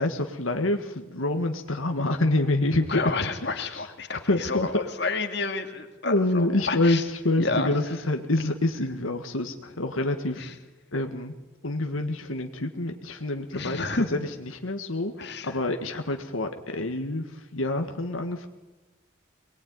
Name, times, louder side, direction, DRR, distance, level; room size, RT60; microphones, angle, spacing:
voice 1, 0.0-3.0 3.4-3.8 4.3-4.8 6.0-10.5 10.9-11.3 11.6-18.5, left 2 dB, 85° left, 4 dB, 1.8 m, -27 dB
voice 2, 2.9-7.0 7.4-7.7 10.4-10.5 13.5-14.1 15.2-15.5, left 3 dB, 55° left, 5 dB, 2.5 m, -30 dB
24.0 x 21.0 x 9.5 m, 1.1 s
head